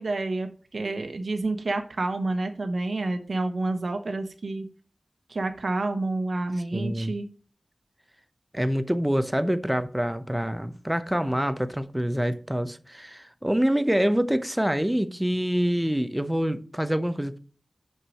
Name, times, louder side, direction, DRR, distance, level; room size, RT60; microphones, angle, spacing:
voice 1, 0.0-4.6 5.3-7.2, right 2 dB, 70° right, 1.0 m, -29 dB
voice 2, 6.7-7.1 8.5-17.4, equal, 10° right, 0.7 m, -26 dB
6.0 x 4.7 x 6.4 m
wide cardioid pair, 60°, 0 cm